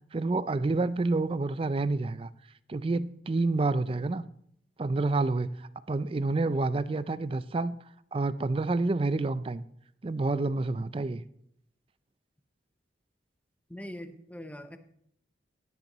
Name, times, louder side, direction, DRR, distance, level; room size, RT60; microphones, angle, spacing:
voice 1, 0.1-2.3 2.7-4.2 4.8-7.8 8.1-9.6 10.0-11.2, right 3 dB, 30° right, 0.4 m, -28 dB
voice 2, 13.7-14.8, equal, 10° left, 0.7 m, -42 dB
16.0 x 10.5 x 3.0 m
head